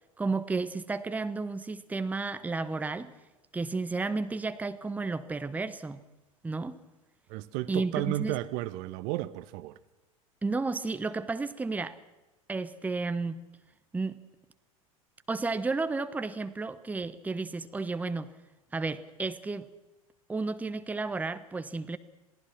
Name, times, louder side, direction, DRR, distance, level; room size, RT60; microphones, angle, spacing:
voice 1, 0.2-3.1 3.5-6.0 6.4-6.8 7.7-8.4 10.4-12.0 12.5-13.4 13.9-14.2 15.3-18.3 18.7-19.7 20.3-22.0, right 3 dB, 10° right, 0.9 m, -32 dB
voice 2, 7.3-9.7, right 16 dB, 45° right, 1.1 m, -33 dB
27.0 x 18.0 x 6.1 m
figure-of-eight pair, 85°, 18 cm